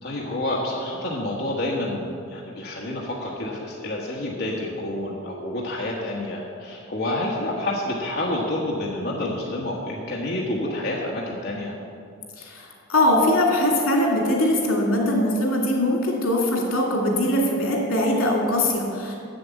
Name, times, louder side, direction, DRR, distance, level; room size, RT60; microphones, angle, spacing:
voice 1, 0.0-11.7, left 1 dB, 50° left, -3 dB, 1.3 m, -28 dB
voice 2, 12.4-19.1, left 1 dB, 90° left, -1 dB, 2.4 m, -21 dB
7.8 x 7.5 x 8.1 m, 2.4 s
head